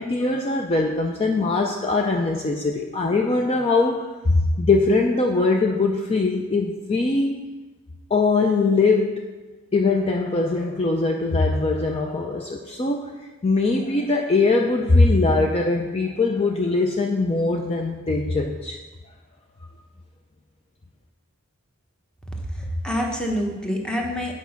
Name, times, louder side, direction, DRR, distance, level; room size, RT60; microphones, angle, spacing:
voice 1, 0.0-7.4 8.1-9.2 9.7-18.8, left 3 dB, 25° left, 2 dB, 0.4 m, -21 dB
voice 2, 22.4-24.3, equal, 5° left, 0 dB, 1.0 m, -26 dB
8.3 x 4.7 x 5.7 m, 1.2 s
head